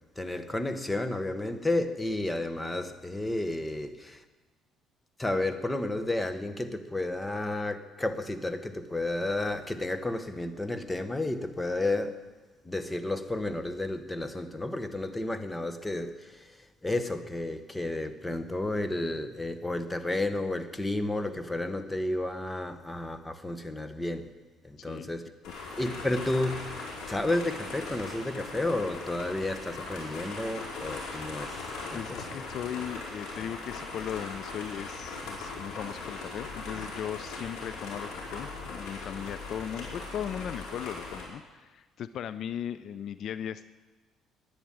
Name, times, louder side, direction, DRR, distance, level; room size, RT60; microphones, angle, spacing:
voice 1, 0.2-4.2 5.2-12.2 12.6-24.3 24.6-25.3 25.8-26.7 27.1-31.6 31.9-32.0, left 2 dB, 10° left, 10 dB, 1.0 m, -32 dB
voice 2, 24.8-25.1 31.9-43.7, left 9 dB, 55° left, 14 dB, 0.4 m, -38 dB
sound 1, 25.4-41.2, left 3 dB, 80° left, 5.0 m, -39 dB
11.0 x 10.0 x 8.9 m, 1.2 s
cardioid pair, 120°, 0 cm